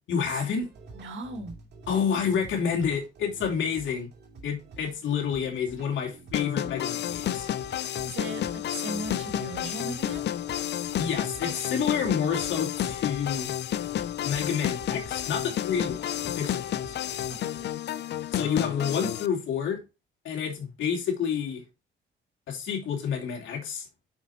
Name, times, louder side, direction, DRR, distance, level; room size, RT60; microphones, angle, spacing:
voice 1, 0.1-0.7 1.9-4.1 4.4-7.5 11.0-13.5 14.2-17.0 18.3-19.8 20.2-21.6 22.5-23.9, left 7 dB, 75° left, 2.9 m, -29 dB
sound 1, 0.6-17.7, right 4 dB, 60° right, 2.4 m, -48 dB
voice 2, 0.9-1.6 8.0-10.2 17.3-17.5, right 2 dB, 75° right, 2.2 m, -37 dB
sound 2, 6.3-19.3, left 11 dB, 60° left, 0.5 m, -31 dB
7.1 x 5.1 x 4.3 m
cardioid pair, 90°, 20 cm